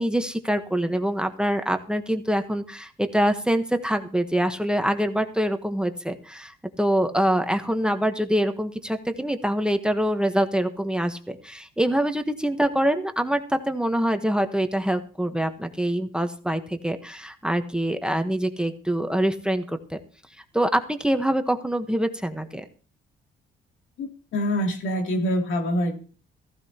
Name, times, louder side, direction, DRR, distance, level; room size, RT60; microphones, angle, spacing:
voice 1, 0.0-20.0 20.5-22.6, right 1 dB, 5° right, 6 dB, 1.1 m, -25 dB
voice 2, 24.0-26.0, equal, 75° left, 2 dB, 2.9 m, -25 dB
15.0 x 15.0 x 2.9 m, 0.40 s
cardioid pair, 90°, 20 cm